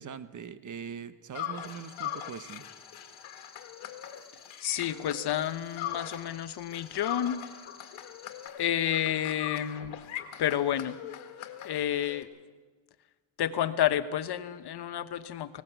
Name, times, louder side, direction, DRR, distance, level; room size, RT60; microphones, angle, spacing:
voice 1, 0.0-2.7, right 7 dB, 40° right, 13 dB, 1.2 m, -42 dB
sound 1, 1.3-6.4 6.7-12.2, left 11 dB, 80° left, 1.9 m, -41 dB
sound 2, 1.6-8.5, left 4 dB, 20° left, 1.8 m, -55 dB
voice 2, 4.6-7.4 8.6-9.9 10.4-11.0 11.6-12.3 13.4-15.6, left 11 dB, 55° left, 11 dB, 1.0 m, -30 dB
18.5 x 17.5 x 8.1 m, 1.4 s
cardioid pair, 100°, 46 cm